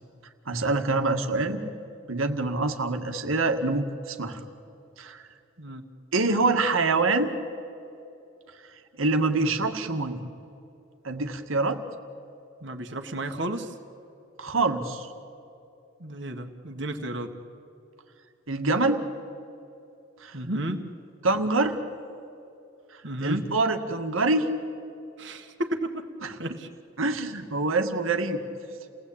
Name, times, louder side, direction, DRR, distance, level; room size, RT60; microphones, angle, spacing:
voice 1, 0.5-1.6 2.1-4.4 5.0-5.2 6.1-7.3 9.0-10.2 11.0-11.8 14.4-15.1 18.5-19.0 20.2-20.4 21.2-21.8 23.2-24.5 26.2-26.3 27.0-28.4, right 3 dB, 85° right, 6 dB, 2.0 m, -25 dB
voice 2, 12.6-13.7 16.0-17.3 20.3-20.8 23.0-23.5 25.2-26.1 26.4-26.7, right 1 dB, 60° right, 4 dB, 1.7 m, -32 dB
29.5 x 19.0 x 8.8 m, 2.8 s
head